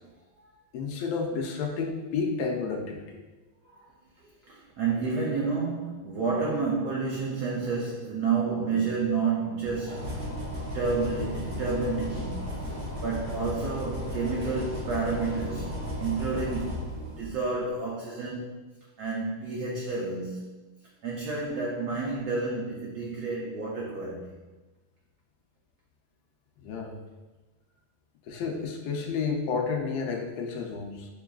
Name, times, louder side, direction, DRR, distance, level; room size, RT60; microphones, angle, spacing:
voice 1, 0.7-3.0 26.6-27.0 28.3-31.1, left 5 dB, 90° left, 1 dB, 0.8 m, -31 dB
voice 2, 4.2-10.3 10.7-12.7 13.0-18.6 19.0-20.7 21.0-24.3, right 4 dB, 80° right, -3 dB, 0.8 m, -30 dB
sound 1, 9.6-17.6, equal, 50° right, 1.0 m, -35 dB
6.4 x 2.3 x 2.3 m, 1.2 s
omnidirectional pair, 2.3 m